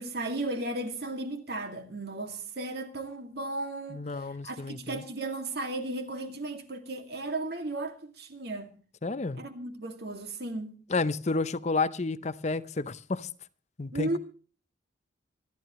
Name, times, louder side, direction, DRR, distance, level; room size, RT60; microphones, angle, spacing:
voice 1, 0.0-8.7 9.4-10.7 13.9-14.2, right 2 dB, 60° right, 2.2 m, -35 dB
voice 2, 3.9-5.0 9.0-9.4 10.9-13.3 13.8-14.2, left 3 dB, 40° left, 0.6 m, -31 dB
26.0 x 11.0 x 3.1 m
head